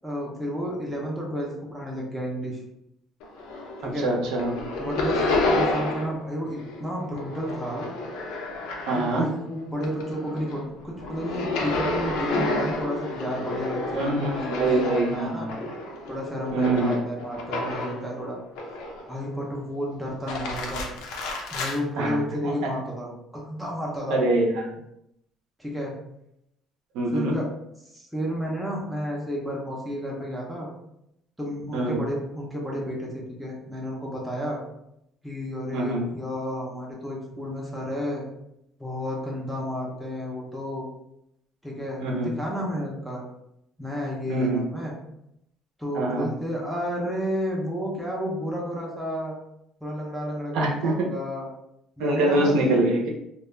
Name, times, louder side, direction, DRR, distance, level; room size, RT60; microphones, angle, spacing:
voice 1, 0.0-2.6 3.8-4.1 4.8-7.9 9.0-15.5 16.1-18.4 19.1-20.9 21.5-24.2 25.6-25.9 27.1-27.5 27.9-30.7 31.4-34.6 35.2-38.2 38.8-40.8 41.6-43.2 43.8-44.9 45.8-49.3 49.8-51.5 52.0-52.8, equal, ahead, -4 dB, 0.5 m, -31 dB
sound 1, 3.2-3.9 4.2-6.2 6.5-9.4 9.7-18.1 18.5-19.2 20.1-21.8, left 2 dB, 85° left, 0.5 m, -30 dB
voice 2, 3.8-4.6 8.9-9.3 13.9-15.5 16.5-17.0 22.0-22.2 22.4-22.7 24.1-24.7 26.9-27.3 31.7-32.0 35.7-36.1 42.0-42.3 44.3-44.7 45.9-46.3 50.5-51.1 52.0-53.1, right 2 dB, 70° right, -1 dB, 0.6 m, -24 dB
2.2 x 2.1 x 3.1 m, 0.80 s
cardioid pair, 180°, 0 cm